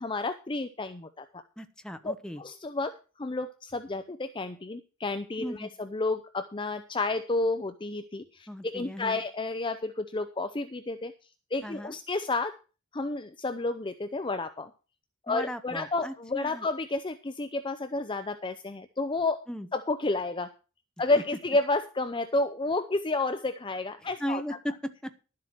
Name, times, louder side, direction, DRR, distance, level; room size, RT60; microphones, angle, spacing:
voice 1, 0.0-1.4 2.0-2.9 3.2-11.1 11.5-12.5 12.9-14.7 15.3-19.4 19.7-20.5 21.0-24.4, left 2 dB, 20° left, 9 dB, 0.5 m, -31 dB
voice 2, 1.6-2.4 5.4-5.7 8.5-9.2 11.6-12.0 15.3-16.7 19.5-19.7 24.0-25.1, equal, 5° left, 8 dB, 0.9 m, -37 dB
12.0 x 7.6 x 5.9 m, 0.35 s
head